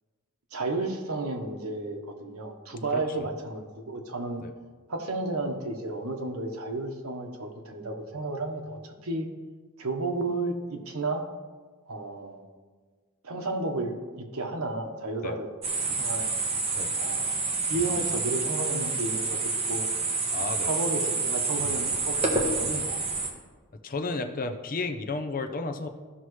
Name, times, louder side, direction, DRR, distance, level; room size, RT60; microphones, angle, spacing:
voice 1, 0.5-4.4 4.9-9.3 9.8-11.2 11.9-12.4 13.2-15.5 15.8-16.3 16.9-17.4 17.7-19.9 20.6-22.2 22.5-23.0, right 2 dB, 90° right, 3 dB, 1.1 m, -32 dB
voice 2, 2.9-3.3 4.4-4.5 15.2-15.4 16.7-17.0 20.3-20.8 23.8-25.9, left 3 dB, 40° left, 7 dB, 0.6 m, -33 dB
sound 1, 15.6-23.3, right 3 dB, 30° right, 1.1 m, -28 dB
14.0 x 5.8 x 3.2 m, 1.4 s
head